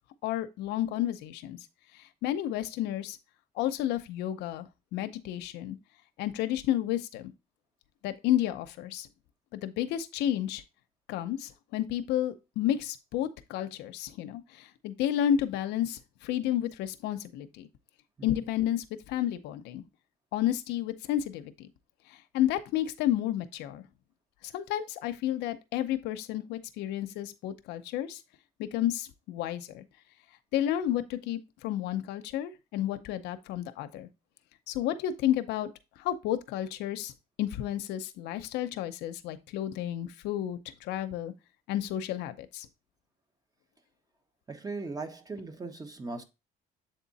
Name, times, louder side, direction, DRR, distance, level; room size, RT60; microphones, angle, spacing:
voice 1, 0.2-1.6 2.2-3.2 3.6-5.8 6.2-7.3 8.0-9.1 9.5-10.6 11.1-17.7 18.2-19.8 20.3-21.7 22.3-23.8 24.4-28.2 28.6-29.8 30.5-34.1 34.7-35.7 36.0-37.1 37.4-41.3 41.7-42.7, left 11 dB, 90° left, 0.7 m, -31 dB
voice 2, 44.5-46.2, right 3 dB, 20° right, 1.2 m, -38 dB
7.8 x 3.7 x 4.0 m
cardioid pair, 110°, 17 cm